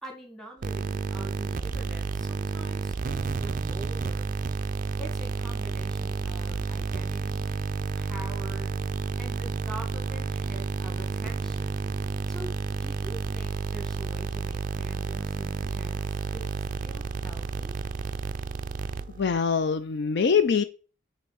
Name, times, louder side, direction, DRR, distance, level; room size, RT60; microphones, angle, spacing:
voice 1, 0.0-4.4 5.0-7.6 7.9-8.7 9.2-16.5 16.8-17.8, right 1 dB, ahead, 1.5 m, -44 dB
sound 1, 0.6-19.4, right 4 dB, 40° right, 0.4 m, -31 dB
voice 2, 19.2-20.6, left 6 dB, 55° left, 0.4 m, -23 dB
5.6 x 4.3 x 6.2 m
head